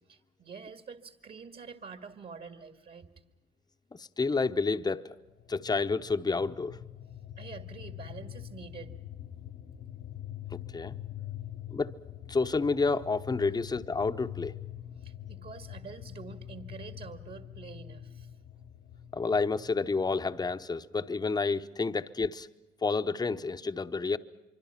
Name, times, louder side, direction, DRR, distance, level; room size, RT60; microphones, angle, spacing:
voice 1, 0.1-3.1 7.4-8.9 10.9-11.1 11.3-11.5 15.0-18.3, right 5 dB, 50° right, 2.2 m, -47 dB
voice 2, 4.0-5.2 5.5-6.8 10.7-10.9 11.7-11.9 12.3-14.5 19.1-22.5 22.8-24.2, left 4 dB, 20° left, 0.9 m, -29 dB
sound 1, 5.2-20.6, left 12 dB, 60° left, 1.1 m, -44 dB
25.5 x 24.5 x 5.8 m
supercardioid pair, 75°, 21 cm